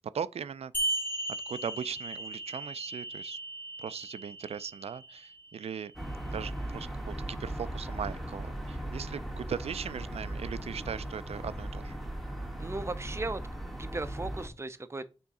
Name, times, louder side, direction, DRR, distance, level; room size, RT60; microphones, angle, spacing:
voice 1, 0.1-0.7 1.5-3.4 3.8-5.9 6.3-12.0, right 7 dB, 80° right, 0.4 m, -38 dB
sound 1, 0.7-5.8, right 1 dB, 20° left, 1.7 m, -37 dB
sound 2, 6.0-14.5, right 1 dB, ahead, 1.2 m, -38 dB
voice 2, 12.6-13.4 13.7-15.1, right 2 dB, 25° right, 0.5 m, -37 dB
7.0 x 3.6 x 4.1 m
wide cardioid pair, 110°, 10 cm